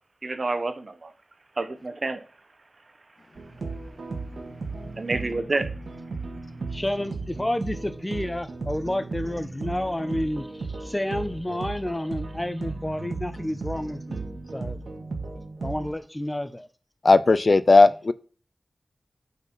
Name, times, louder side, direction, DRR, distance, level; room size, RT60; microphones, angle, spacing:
voice 1, 0.2-1.1 1.6-2.2 5.0-5.7, right 3 dB, 55° right, 1.1 m, -28 dB
sound 1, 3.4-16.0, right 3 dB, 85° right, 1.8 m, -35 dB
voice 2, 6.7-14.8 15.6-16.7, left 1 dB, 15° left, 1.0 m, -30 dB
voice 3, 17.0-18.1, left 3 dB, 55° left, 0.5 m, -16 dB
8.1 x 4.7 x 5.5 m
wide cardioid pair, 70°, 0 cm